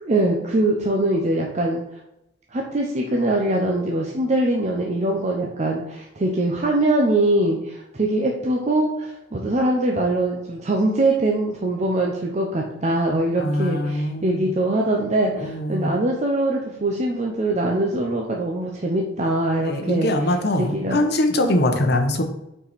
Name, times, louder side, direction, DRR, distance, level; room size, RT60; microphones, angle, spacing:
voice 1, 0.0-1.8 2.5-20.1 20.6-21.0, right 1 dB, 35° right, 0 dB, 0.7 m, -22 dB
voice 2, 13.4-14.5 15.4-15.9 19.6-22.2, left 1 dB, 55° left, 5 dB, 0.9 m, -22 dB
5.6 x 4.8 x 4.2 m, 0.85 s
head